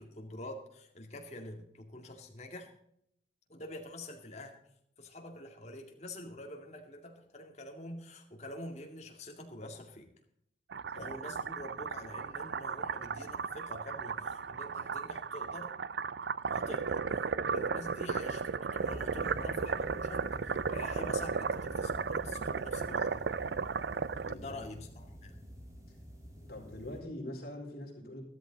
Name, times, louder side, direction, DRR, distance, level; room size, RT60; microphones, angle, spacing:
voice 1, 0.0-2.7 3.5-4.6 5.0-10.1 10.9-15.7 16.5-23.2 24.3-25.4, left 1 dB, 40° left, 2 dB, 2.3 m, -46 dB
sound 1, 10.7-24.3, right 5 dB, 75° right, 0.5 m, -35 dB
sound 2, 18.8-27.0, equal, 20° right, 2.6 m, -48 dB
voice 2, 24.2-24.6 25.9-26.0 26.5-28.2, left 1 dB, 60° left, -1 dB, 4.4 m, -43 dB
14.0 x 13.0 x 4.0 m, 0.72 s
head